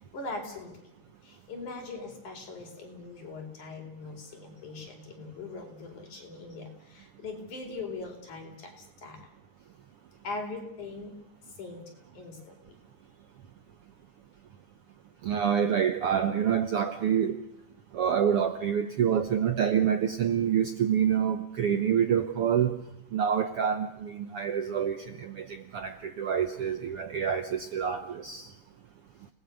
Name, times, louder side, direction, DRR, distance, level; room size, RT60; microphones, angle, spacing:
voice 1, 0.1-0.8 1.2-9.3 10.2-11.2 11.5-12.8, left 3 dB, 65° left, 5.9 m, -41 dB
voice 2, 15.2-17.4 17.9-22.8 23.1-28.5, right 8 dB, 65° right, 1.5 m, -27 dB
30.0 x 19.5 x 6.6 m
omnidirectional pair, 3.7 m